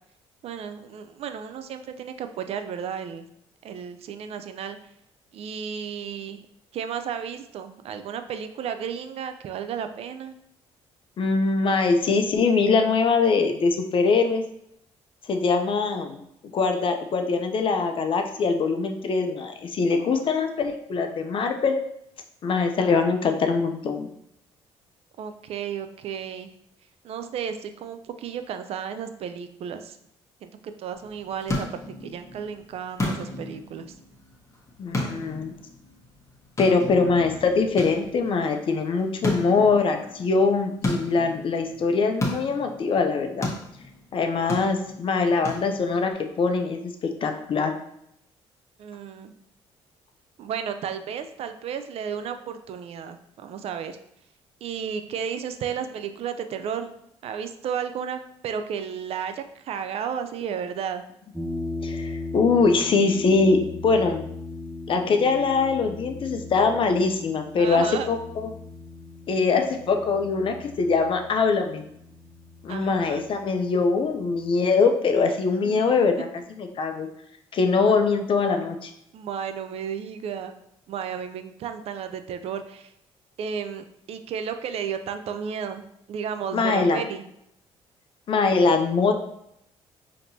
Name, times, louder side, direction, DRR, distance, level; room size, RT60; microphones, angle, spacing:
voice 1, 0.4-3.3 3.6-4.8 5.3-6.5 6.7-10.3 19.9-20.3 25.2-26.5 27.0-30.0 30.4-33.9 48.8-49.3 50.4-54.0 54.6-56.9 57.2-61.0 67.6-68.1 72.7-73.2 75.6-76.3 79.1-80.5 80.9-82.9 83.4-85.8 86.1-87.2, right 7 dB, 60° right, 8 dB, 0.4 m, -33 dB
voice 2, 11.2-14.4 15.3-16.2 16.5-21.8 22.4-24.1 34.8-35.5 36.6-43.5 44.1-46.1 46.4-47.7 61.8-63.6 63.8-64.2 64.9-68.5 69.3-71.8 72.6-76.3 76.6-77.1 77.5-78.9 86.5-87.0 88.3-89.1, left 4 dB, 50° left, 5 dB, 0.5 m, -22 dB
sound 1, 30.9-46.1, left 1 dB, 25° left, 1.1 m, -34 dB
sound 2, 61.3-74.4, left 2 dB, 5° right, 0.8 m, -38 dB
5.1 x 2.8 x 2.7 m, 0.77 s
cardioid pair, 80°, 12 cm